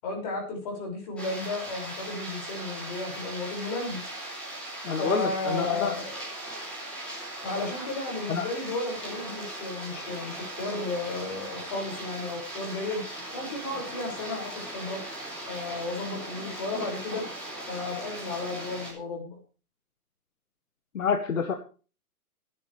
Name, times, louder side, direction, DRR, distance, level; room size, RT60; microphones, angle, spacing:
voice 1, 0.0-4.0 5.0-6.2 7.4-13.0 13.3-15.0 15.5-17.3 17.7-19.4, left 2 dB, 25° left, 1 dB, 6.0 m, -33 dB
sound 1, 1.2-18.9, right 1 dB, ahead, 3.1 m, -39 dB
voice 2, 4.8-6.0 8.3-8.4 20.9-21.5, left 6 dB, 60° left, 7 dB, 1.7 m, -28 dB
23.5 x 10.5 x 3.4 m, 0.37 s
hypercardioid pair, 175°, 45 cm